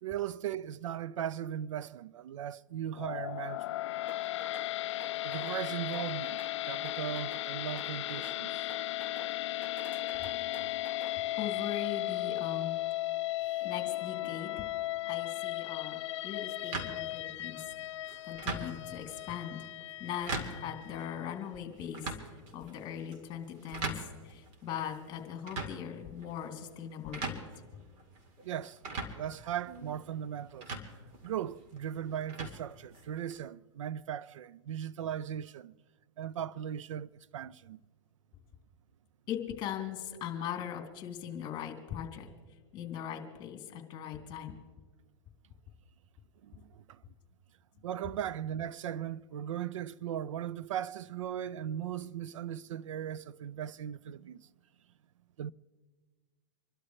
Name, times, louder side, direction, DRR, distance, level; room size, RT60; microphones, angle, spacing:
voice 1, 0.0-3.8 5.2-6.4 6.7-8.7 13.4-13.6 28.4-28.8 29.2-30.8 31.2-35.7 36.2-37.8 46.4-47.0 47.8-54.5 55.4-55.5, right 10 dB, 75° right, 0.5 m, -38 dB
sound 1, 2.9-21.2, left 15 dB, 65° left, 0.4 m, -36 dB
sound 2, 4.1-4.7 5.0-5.6 5.9-6.6 6.8-7.5 7.8-8.4 8.7-9.3 9.6-11.2, equal, 15° right, 1.2 m, -50 dB
voice 2, 11.4-12.8 13.6-14.7 15.1-17.6 18.3-19.6 20.0-20.3 20.6-22.1 22.5-27.4 39.3-42.3 42.7-44.5, left 9 dB, 30° left, 3.1 m, -40 dB
sound 3, 16.7-33.4, right 3 dB, 40° right, 2.5 m, -43 dB
27.0 x 12.5 x 3.3 m
hypercardioid pair, 125°, 16 cm